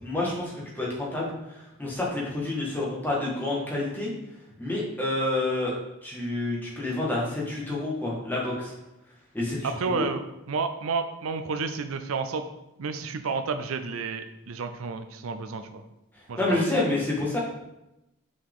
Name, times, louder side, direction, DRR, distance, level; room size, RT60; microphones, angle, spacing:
voice 1, 0.0-4.1 4.6-5.7 6.0-8.7 9.3-10.1 16.4-17.4, left 2 dB, 10° left, -5 dB, 1.6 m, -28 dB
voice 2, 9.6-10.2 10.5-12.5 12.8-15.8 16.3-16.6, right 4 dB, 75° right, 8 dB, 0.5 m, -31 dB
6.2 x 4.9 x 3.7 m, 0.92 s
head